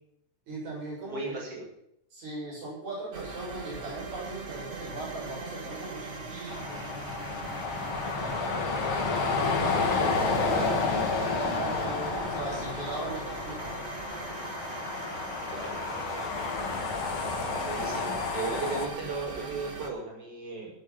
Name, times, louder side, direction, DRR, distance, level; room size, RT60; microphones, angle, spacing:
voice 1, 0.5-1.4 2.1-6.9 9.1-13.8, right 2 dB, 75° right, -5 dB, 8.3 m, -39 dB
voice 2, 1.1-1.6 8.3-8.4 15.5-15.8 17.6-20.7, right 4 dB, 50° right, -2 dB, 7.3 m, -36 dB
sound 1, 3.1-19.9, right 4 dB, 30° right, 1.6 m, -41 dB
sound 2, 6.5-18.9, left 4 dB, 45° left, 2.7 m, -30 dB
18.0 x 9.0 x 5.9 m, 0.73 s
omnidirectional pair, 3.3 m